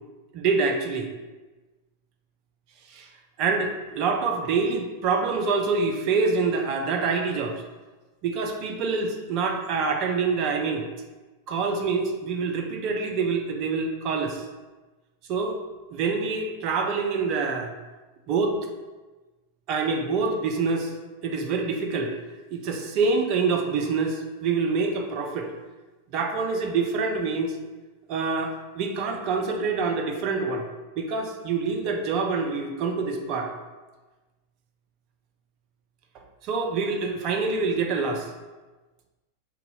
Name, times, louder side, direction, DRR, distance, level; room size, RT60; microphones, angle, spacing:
voice 1, 0.3-1.1 2.9-3.1 3.4-7.6 8.2-10.8 11.5-14.4 15.3-15.6 15.9-17.7 18.3-18.6 19.7-20.9 21.2-22.2 22.5-25.5 26.1-27.5 28.1-30.7 31.0-33.5 36.4-38.3, right 4 dB, 40° right, 3 dB, 0.4 m, -26 dB
2.7 x 2.2 x 3.8 m, 1.2 s
figure-of-eight pair, 90°, 0 cm